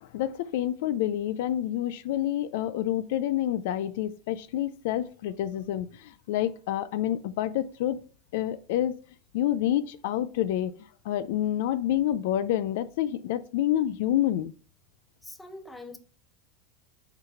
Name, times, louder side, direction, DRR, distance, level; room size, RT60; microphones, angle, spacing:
voice 1, 0.0-8.0 8.3-9.0 9.3-10.7 11.0-14.5, left 12 dB, 70° left, 0.4 m, -28 dB
voice 2, 15.2-16.0, left 2 dB, 5° left, 0.7 m, -43 dB
5.6 x 3.9 x 4.4 m
supercardioid pair, 145°, 0 cm